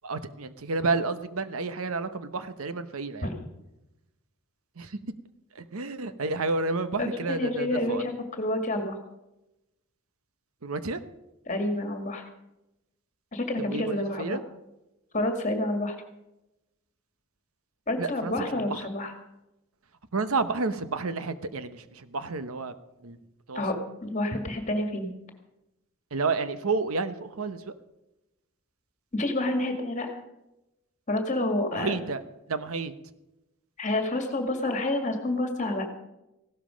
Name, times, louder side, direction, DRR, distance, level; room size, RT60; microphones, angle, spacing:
voice 1, 0.0-3.3 4.8-5.0 5.5-8.0 10.6-11.0 13.6-14.4 18.0-18.9 20.1-22.7 23.0-23.2 23.5-23.6 26.1-27.7 31.7-32.2 32.5-32.9, right 3 dB, 75° right, 12 dB, 0.9 m, -30 dB
voice 2, 7.0-9.0 11.5-12.2 13.3-14.4 15.1-16.0 17.9-19.1 23.5-23.8 24.0-25.1 29.1-30.2 31.1-32.0 33.8-35.9, left 1 dB, 35° left, 5 dB, 2.0 m, -28 dB
16.0 x 12.5 x 5.2 m, 0.93 s
head